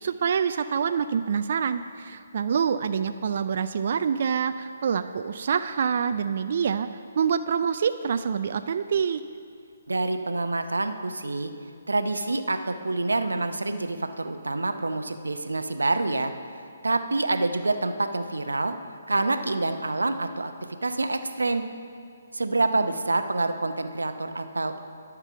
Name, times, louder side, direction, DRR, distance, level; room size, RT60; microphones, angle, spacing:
voice 1, 0.0-6.9 7.2-9.2, right 7 dB, 55° right, 10 dB, 0.4 m, -26 dB
voice 2, 9.9-11.5 11.9-16.3 16.8-18.8 19.1-20.5 20.8-21.6 22.3-24.8, right 2 dB, 90° right, 8 dB, 0.8 m, -27 dB
11.5 x 6.0 x 6.8 m, 2.4 s
figure-of-eight pair, 145°, 0 cm